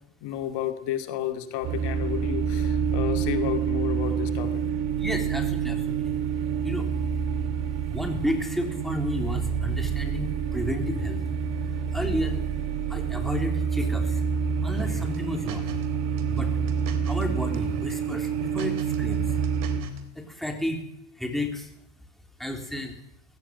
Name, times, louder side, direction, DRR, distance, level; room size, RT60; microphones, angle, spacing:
voice 1, 0.2-4.6, left 11 dB, 65° left, 8 dB, 2.4 m, -31 dB
sound 1, 1.6-19.8, right 7 dB, 65° right, 3.2 m, -27 dB
voice 2, 5.0-6.2 6.6-6.9 7.8-11.2 11.6-12.4 12.9-14.2 14.6-15.8 16.3-16.6 17.0-19.4 20.1-20.8 21.1-21.7 22.4-23.0, left 1 dB, ahead, 3 dB, 3.5 m, -32 dB
sound 2, 14.8-15.9 16.2-17.2 17.5-17.9 18.2-20.0, right 7 dB, 45° right, 3.5 m, -40 dB
20.5 x 17.0 x 9.3 m, 0.75 s
cardioid pair, 145°, 45 cm